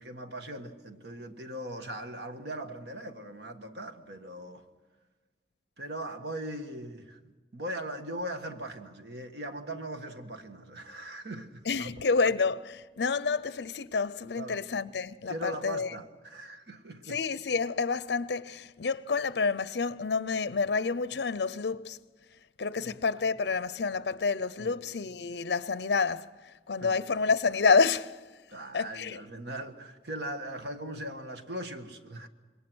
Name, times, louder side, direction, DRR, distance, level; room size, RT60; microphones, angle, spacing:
voice 1, 0.0-4.6 5.8-12.0 14.4-14.6 15.3-17.2 22.7-23.0 24.6-24.8 26.8-27.0 28.5-32.3, right 1 dB, 75° right, 1.6 m, -40 dB
voice 2, 11.7-15.9 17.1-22.0 22.6-28.2 28.7-29.2, left 4 dB, 75° left, 0.6 m, -29 dB
27.0 x 22.0 x 6.2 m
head